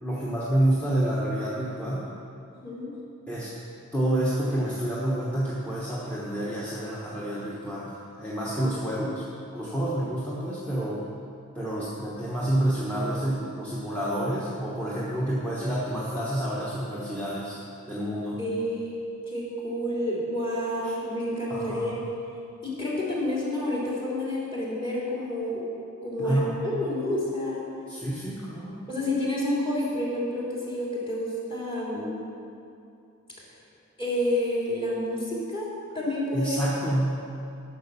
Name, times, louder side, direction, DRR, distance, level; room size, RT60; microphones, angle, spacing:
voice 1, 0.0-2.1 3.3-3.5 3.9-11.1 11.5-17.6 17.9-18.4 20.8-20.9 21.5-21.9 26.2-26.6 27.9-28.8 36.3-37.2, right 1 dB, 5° left, -7 dB, 1.2 m, -28 dB
voice 2, 18.4-18.9 19.3-22.0 22.6-25.6 26.0-27.6 28.9-32.2 34.0-35.7 35.9-36.7, left 1 dB, 25° left, -6 dB, 3.0 m, -29 dB
11.5 x 6.1 x 6.9 m, 2.6 s
head